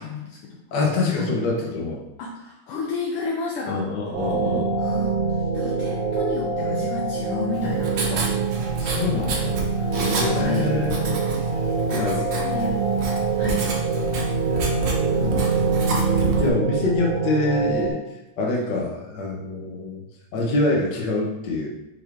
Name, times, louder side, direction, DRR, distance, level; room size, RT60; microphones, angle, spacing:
voice 1, 0.0-0.6 1.2-1.3 2.2-3.9 4.8-5.2 5.5-8.5 9.3-9.5 10.3-10.7 11.6-13.1 13.4-13.7, left 4 dB, 75° left, -2 dB, 1.3 m, -32 dB
voice 2, 0.7-2.0 3.7-4.7 8.1-8.3 8.8-9.6 9.9-11.2 11.5-11.6 11.9-12.2 14.5-14.6 15.1-18.0 18.4-20.0 20.3-21.7, left 2 dB, 50° left, -2 dB, 1.4 m, -26 dB
sound 1, 4.1-17.9, right 4 dB, 85° right, 2.2 m, -25 dB
Writing, 7.5-16.5, right 4 dB, 65° right, 1.1 m, -29 dB
6.3 x 4.5 x 3.5 m, 0.92 s
omnidirectional pair, 3.3 m